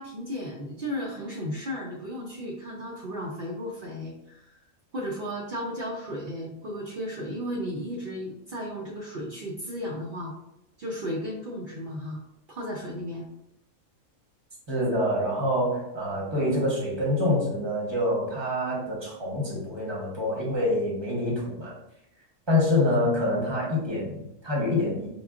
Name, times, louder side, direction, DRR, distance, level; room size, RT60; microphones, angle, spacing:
voice 1, 0.0-4.5 4.9-10.3 10.8-12.2 12.5-13.3, equal, 55° right, -3 dB, 0.6 m, -34 dB
voice 2, 14.7-21.7 22.5-25.1, left 1 dB, 20° right, -4 dB, 0.9 m, -26 dB
5.2 x 2.3 x 2.3 m, 0.82 s
omnidirectional pair, 1.4 m